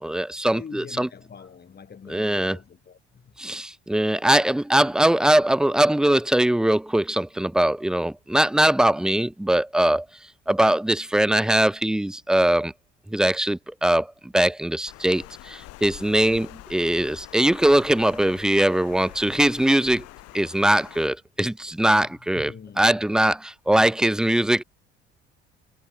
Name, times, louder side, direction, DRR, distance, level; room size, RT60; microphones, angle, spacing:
voice 1, 0.0-1.1 2.1-2.6 3.4-10.1 10.5-12.7 13.1-20.1 20.3-24.6, right 1 dB, ahead, 0.4 m, -21 dB
voice 2, 0.5-3.3 22.0-23.2, left 6 dB, 35° left, 2.9 m, -44 dB
Water, 14.9-21.1, left 18 dB, 55° left, 1.1 m, -45 dB
figure-of-eight pair, 55°, 29 cm